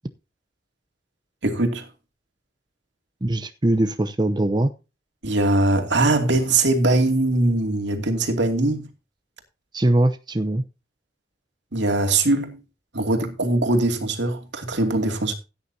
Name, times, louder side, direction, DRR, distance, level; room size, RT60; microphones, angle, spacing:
voice 1, 1.4-1.9 5.2-8.9 11.7-12.6 12.9-15.3, right 2 dB, 75° right, 2.7 m, -21 dB
voice 2, 3.2-4.7 9.7-10.6, right 1 dB, 25° right, 0.8 m, -21 dB
16.5 x 9.5 x 2.8 m
head